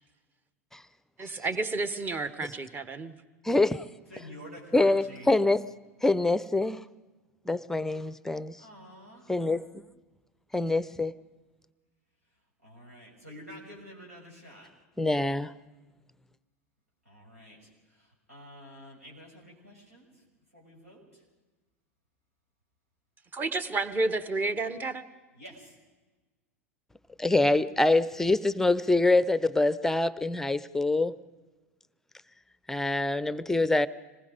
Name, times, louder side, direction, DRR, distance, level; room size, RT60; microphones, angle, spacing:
voice 1, 1.2-3.1 23.3-25.0, right 3 dB, 25° right, 1.3 m, -31 dB
voice 2, 3.4-3.8 4.7-5.6 6.0-6.8 7.5-8.6 9.3-9.8 10.5-11.1 15.0-15.5 27.2-31.2 32.7-33.9, left 2 dB, 5° left, 0.6 m, -25 dB
voice 3, 4.1-5.3 8.6-9.3 12.6-14.7 17.0-20.1 20.5-21.2 25.3-25.7, equal, 90° right, 6.5 m, -49 dB
26.0 x 19.5 x 5.2 m
figure-of-eight pair, 85°, 8 cm